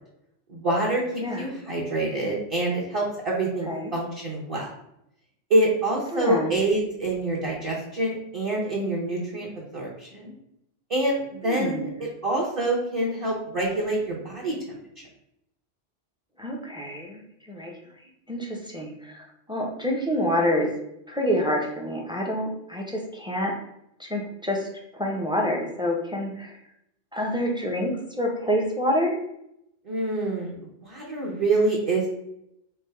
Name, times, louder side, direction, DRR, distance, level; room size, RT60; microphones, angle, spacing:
voice 1, 0.5-4.7 5.5-10.3 10.9-14.8 29.8-30.5 30.8-32.1, right 2 dB, 30° right, -4 dB, 0.8 m, -26 dB
voice 2, 6.1-6.5 11.4-11.9 16.4-17.7 18.3-20.7 21.1-23.6 24.0-26.6 27.1-29.2, equal, 5° right, 0 dB, 0.4 m, -27 dB
3.4 x 2.8 x 4.4 m, 0.79 s
omnidirectional pair, 1.2 m